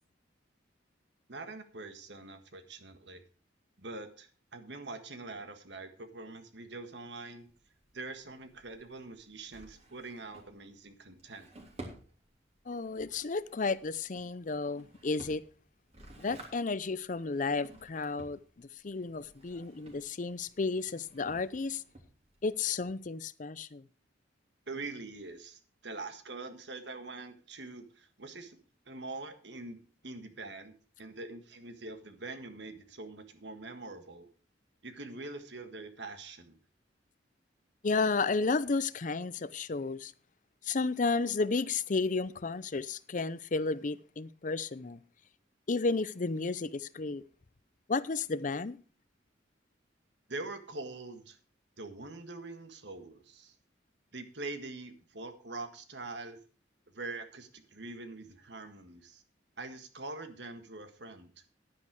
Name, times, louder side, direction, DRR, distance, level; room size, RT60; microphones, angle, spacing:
voice 1, 1.3-3.2 3.8-7.5 7.9-11.5 24.7-28.6 28.8-34.3 34.8-36.6 50.3-51.4 51.8-53.5 54.1-56.4 56.9-59.2 59.6-61.3, right 3 dB, 65° right, 1.6 m, -44 dB
Drawer open or close, 7.4-22.6, right 1 dB, 35° right, 3.2 m, -54 dB
voice 2, 12.7-15.4 16.2-21.8 22.4-23.9 37.8-40.1 40.6-45.0 45.7-47.2 47.9-48.8, left 4 dB, 45° left, 0.6 m, -32 dB
10.5 x 9.8 x 4.7 m
head